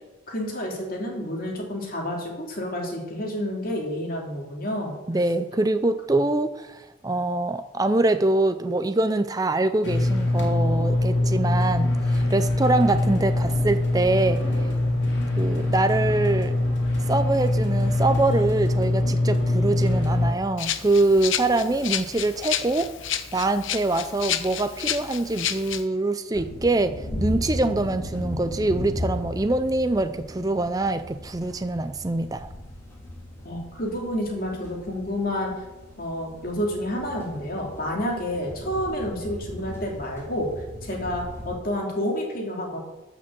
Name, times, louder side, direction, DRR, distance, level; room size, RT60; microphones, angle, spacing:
voice 1, 0.3-4.9 33.4-35.5 36.0-40.5 40.8-42.8, equal, 50° left, -1 dB, 2.8 m, -29 dB
voice 2, 5.1-14.4 15.4-16.5 17.1-22.9 23.3-32.5, right 2 dB, 20° right, 10 dB, 0.4 m, -24 dB
sound 1, 9.8-20.3, left 1 dB, 65° left, 2.8 m, -23 dB
Rattle (instrument), 20.6-25.8, left 10 dB, 80° left, 0.8 m, -30 dB
sound 2, 26.3-41.6, left 1 dB, 15° left, 2.8 m, -37 dB
14.5 x 6.1 x 6.8 m, 1.1 s
head